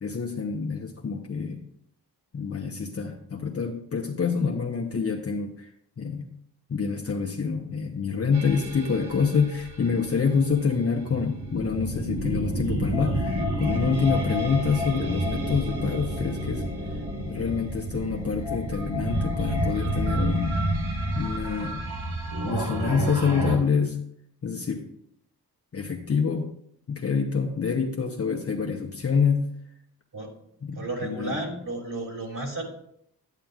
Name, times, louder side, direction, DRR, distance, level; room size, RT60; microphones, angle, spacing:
voice 1, 0.0-1.6 2.3-5.7 6.0-6.3 6.7-16.6 17.3-20.6 21.1-21.8 22.4-24.0 24.4-24.9 25.7-26.5 26.9-29.5 30.6-31.4, left 5 dB, 35° left, 1 dB, 0.8 m, -27 dB
sound 1, 8.3-23.6, right 1 dB, 75° right, 1.8 m, -29 dB
voice 2, 30.7-32.6, right 2 dB, 50° right, 0 dB, 2.8 m, -33 dB
9.9 x 9.0 x 2.4 m, 0.71 s
cardioid pair, 65°, 39 cm